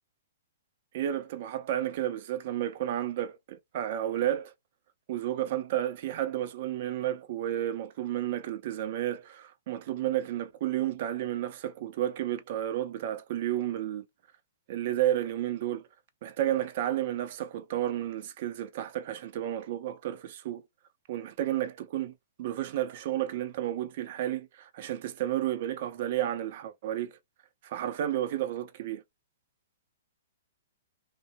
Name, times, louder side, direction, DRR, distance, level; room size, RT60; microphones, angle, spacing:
voice 1, 0.9-4.5 5.1-14.1 14.7-15.8 16.2-20.6 21.1-22.1 22.4-27.1 27.6-29.0, right 12 dB, 50° right, 0.5 m, -32 dB
2.7 x 2.6 x 2.2 m
figure-of-eight pair, 120°, 0 cm